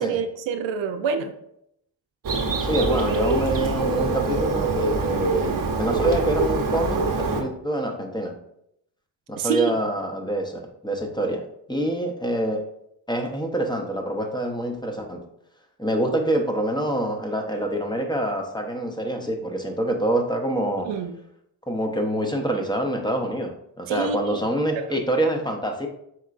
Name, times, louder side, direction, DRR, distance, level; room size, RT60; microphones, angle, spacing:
voice 1, 0.0-1.3 9.4-9.7 20.8-21.1 23.9-24.4 24.8-24.9, right 6 dB, 80° right, 7 dB, 0.5 m, -27 dB
Bird, 2.2-7.4, right 3 dB, 50° right, 0.8 m, -24 dB
voice 2, 2.6-8.3 9.3-11.4 11.7-12.6 13.1-15.2 15.8-20.9 21.7-23.5 23.8-25.9, right 1 dB, 10° left, 3 dB, 0.7 m, -26 dB
4.4 x 3.6 x 2.5 m, 0.76 s
cardioid pair, 55°, 44 cm